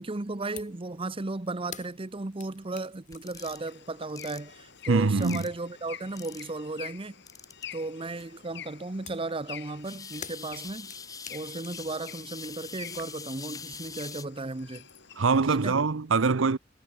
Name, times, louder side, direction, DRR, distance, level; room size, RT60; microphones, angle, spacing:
voice 1, 0.0-7.1 7.7-10.9 11.3-14.9 15.5-15.8, right 2 dB, 30° right, 0.8 m, -35 dB
sound 1, 0.6-0.8 1.1-5.6 5.9-6.7 9.1-14.2 14.4-15.2, left 8 dB, 40° left, 6.0 m, -50 dB
sound 2, 3.1-3.6 4.2-4.4 5.2-5.6 6.2-6.6 7.3-7.6 8.2-8.3 9.8-14.3, left 5 dB, 20° left, 0.7 m, -43 dB
sound 3, 3.4-15.8, left 9 dB, 65° left, 7.6 m, -48 dB
voice 2, 4.9-5.4 15.2-16.6, right 4 dB, 80° right, 0.7 m, -23 dB
head